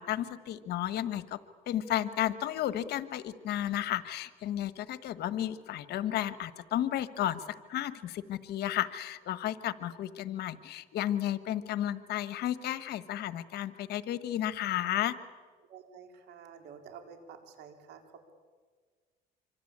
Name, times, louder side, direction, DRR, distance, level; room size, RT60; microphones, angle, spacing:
voice 1, 0.0-1.4 1.7-7.4 7.7-15.1, left 12 dB, 75° left, 14 dB, 1.4 m, -33 dB
voice 2, 15.7-18.0, right 7 dB, 80° right, 5 dB, 4.4 m, -50 dB
26.0 x 25.0 x 8.8 m, 1.5 s
cardioid pair, 110°, 17 cm